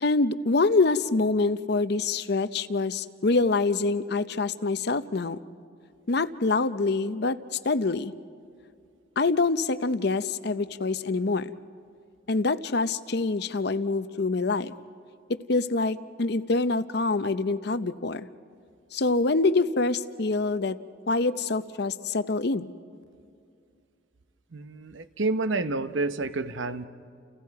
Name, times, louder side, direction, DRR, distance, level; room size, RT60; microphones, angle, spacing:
voice 1, 0.0-5.4 6.1-8.1 9.2-11.5 12.3-14.7 15.3-18.3 18.9-20.8 21.1-22.7, left 3 dB, 55° left, 13 dB, 0.7 m, -25 dB
voice 2, 24.5-26.9, right 3 dB, 75° right, 11 dB, 0.9 m, -29 dB
30.0 x 30.0 x 4.8 m, 2.3 s
head